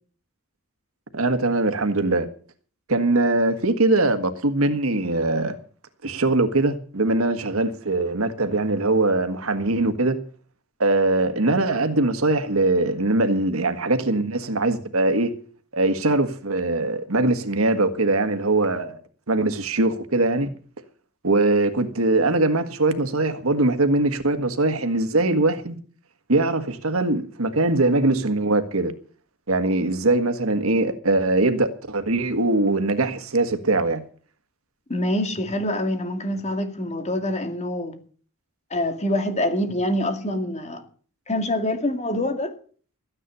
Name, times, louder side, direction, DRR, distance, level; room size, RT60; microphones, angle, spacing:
voice 1, 1.1-2.3 2.9-5.5 6.0-10.2 10.8-15.3 15.7-19.0 19.3-20.5 21.2-25.8 26.3-28.9 29.5-34.0, right 2 dB, 80° right, 1.7 m, -21 dB
voice 2, 34.9-38.0 38.7-40.8 41.3-42.5, left 1 dB, 30° left, 2.2 m, -25 dB
14.0 x 10.0 x 6.8 m
head